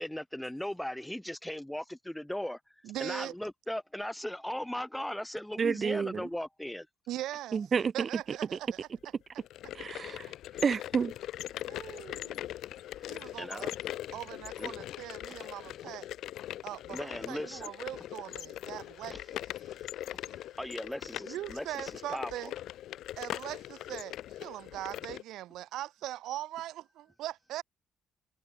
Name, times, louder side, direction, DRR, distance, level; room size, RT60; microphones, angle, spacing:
voice 1, 0.0-2.6 3.0-6.9 10.5-10.6 13.4-13.7 14.6-14.7 16.9-17.7 19.1-19.2 20.1-22.3, left 1 dB, 5° left, 2.2 m, -38 dB
voice 2, 2.8-3.3 7.1-7.6 7.9-8.9 11.7-12.5 13.1-13.7 14.1-16.1 16.6-19.4 21.3-22.5 23.2-24.1 24.4-27.6, right 14 dB, 85° right, 2.0 m, -40 dB
voice 3, 5.6-6.3 7.5-8.1 8.5-8.6 9.7-10.3 10.6-11.1, right 6 dB, 35° right, 3.0 m, -29 dB
sound 1, 9.4-25.2, left 13 dB, 75° left, 2.9 m, -41 dB
cardioid pair, 125°, 0 cm